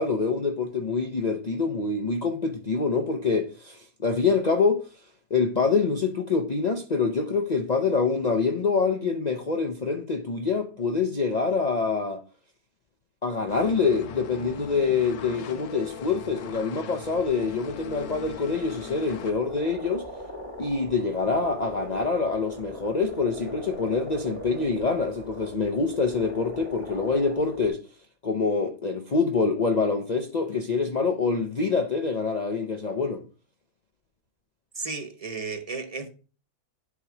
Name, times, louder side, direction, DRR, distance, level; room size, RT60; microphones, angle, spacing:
voice 1, 0.0-4.8 5.3-12.2 13.2-20.0 20.6-27.8 28.2-33.2, left 4 dB, 55° left, 0.4 m, -25 dB
sound 1, 13.5-19.3, left 7 dB, 80° left, 1.2 m, -41 dB
sound 2, 17.0-27.7, left 1 dB, 20° left, 2.2 m, -40 dB
voice 2, 34.7-36.1, right 4 dB, 30° right, 0.8 m, -34 dB
8.2 x 3.0 x 5.9 m
omnidirectional pair, 1.6 m